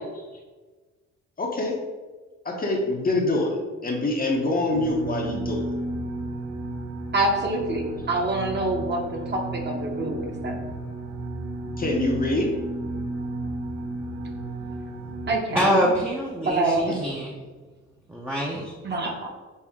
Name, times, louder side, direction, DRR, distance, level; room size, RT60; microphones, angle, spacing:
voice 1, 1.4-1.8 2.4-5.7 11.8-12.5 16.9-17.1, left 2 dB, 30° left, 1 dB, 0.7 m, -25 dB
sound 1, 4.7-15.3, right 2 dB, 65° right, 0.8 m, -33 dB
voice 2, 7.1-9.0 9.3-10.6 15.3-15.8 16.4-16.9 18.8-19.3, right 2 dB, 35° right, 1 dB, 0.9 m, -26 dB
voice 3, 15.5-17.3 18.1-18.7, equal, 5° right, -4 dB, 0.6 m, -25 dB
5.4 x 2.1 x 3.5 m, 1.3 s
cardioid pair, 90°, 30 cm